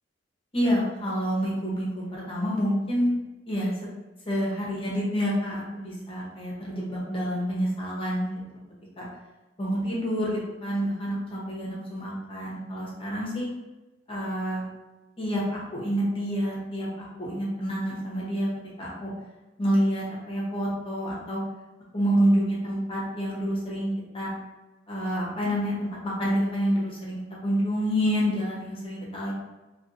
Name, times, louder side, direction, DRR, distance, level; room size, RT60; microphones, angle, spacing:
voice 1, 0.5-3.1 3.5-3.7 4.3-8.3 9.0-9.1 9.6-13.5 14.1-14.6 15.2-18.5 18.8-19.1 19.6-21.4 21.9-24.3 24.9-25.7 26.0-29.3, equal, 30° left, -5 dB, 0.7 m, -28 dB
2.5 x 2.3 x 2.5 m, 1.1 s
head